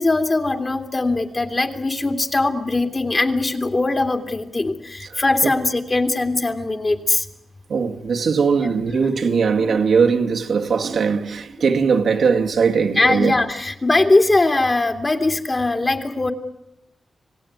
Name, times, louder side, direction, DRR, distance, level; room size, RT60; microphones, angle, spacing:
voice 1, 0.0-7.2 8.6-8.7 13.0-16.3, left 2 dB, 35° left, 2.7 m, -20 dB
voice 2, 7.7-13.3, right 5 dB, 75° right, 2.1 m, -19 dB
26.5 x 18.0 x 9.5 m
cardioid pair, 65°, 0 cm